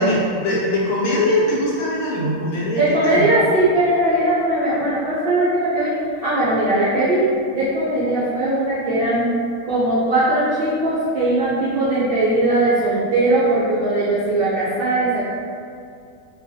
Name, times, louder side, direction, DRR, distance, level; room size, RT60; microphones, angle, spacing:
voice 1, 0.0-3.2, left 1 dB, 85° left, -5 dB, 1.1 m, -21 dB
voice 2, 2.8-5.9 6.2-9.3 9.6-15.2, right 1 dB, 65° right, -11 dB, 0.5 m, -19 dB
2.4 x 2.2 x 2.6 m, 2.4 s
omnidirectional pair, 1.5 m